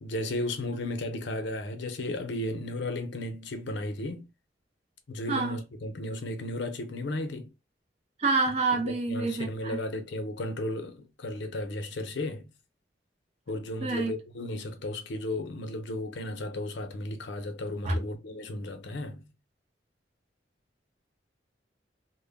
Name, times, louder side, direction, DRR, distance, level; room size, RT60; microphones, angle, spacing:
voice 1, 0.0-4.3 5.1-7.5 8.7-12.5 13.5-19.3, left 1 dB, 80° left, 0.6 m, -34 dB
voice 2, 5.3-5.6 8.2-9.8 13.8-14.1 17.8-17.9, right 3 dB, 35° right, 0.5 m, -28 dB
2.1 x 2.1 x 3.3 m
head